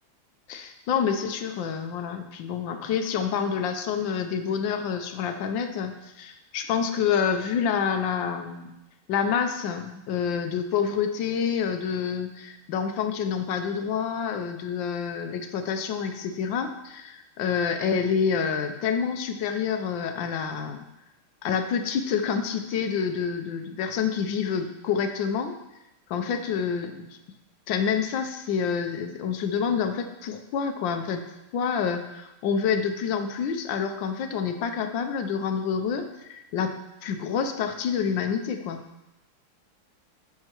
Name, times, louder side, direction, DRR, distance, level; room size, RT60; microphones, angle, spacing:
voice 1, 0.5-8.7 9.1-20.9 21.4-25.5 26.1-27.0 27.7-31.2 31.5-36.7 37.0-38.8, left 7 dB, 70° left, 7 dB, 1.3 m, -28 dB
10.5 x 6.5 x 3.0 m, 0.94 s
omnidirectional pair, 2.4 m